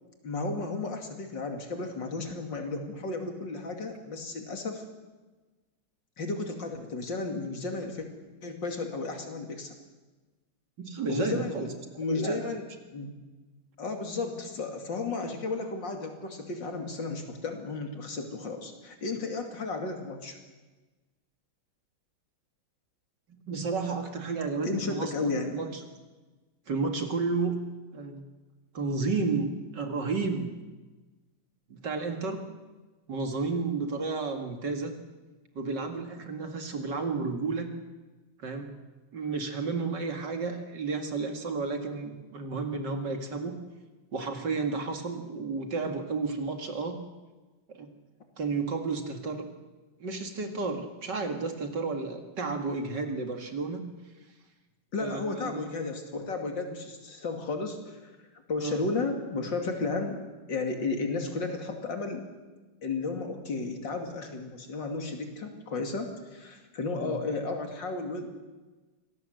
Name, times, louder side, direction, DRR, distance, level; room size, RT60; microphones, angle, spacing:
voice 1, 0.2-4.8 6.2-8.1 8.4-9.7 11.1-11.7 12.0-12.6 12.9-13.2 13.8-20.4 24.6-25.6 54.9-58.1 58.5-60.2 60.5-62.2 62.8-68.3, left 3 dB, 60° left, 4 dB, 3.2 m, -33 dB
voice 2, 10.8-11.7 11.9-12.5 23.5-25.7 26.7-27.6 27.9-28.3 28.7-30.5 31.7-32.4 33.1-34.9 35.6-37.7 38.4-38.7 39.1-43.5 44.1-47.0 47.7-47.9 48.4-49.5 50.0-53.9 55.0-55.7 58.6-58.8 67.0-67.2, right 4 dB, 55° right, 5 dB, 2.6 m, -32 dB
25.5 x 18.0 x 7.8 m, 1.2 s
omnidirectional pair, 2.2 m